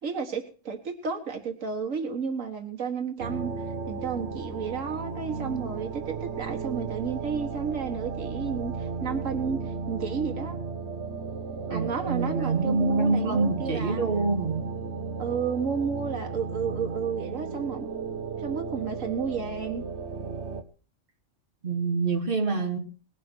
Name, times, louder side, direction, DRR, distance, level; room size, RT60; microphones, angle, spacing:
voice 1, 0.0-3.5 3.9-10.6 11.7-14.0 15.2-18.1 18.4-19.8, right 6 dB, 90° right, 1.9 m, -32 dB
sound 1, 3.2-20.6, right 5 dB, 60° right, 1.4 m, -35 dB
voice 2, 11.7-14.6 21.6-22.8, right 3 dB, 45° right, 2.6 m, -26 dB
20.0 x 11.0 x 4.4 m
omnidirectional pair, 1.3 m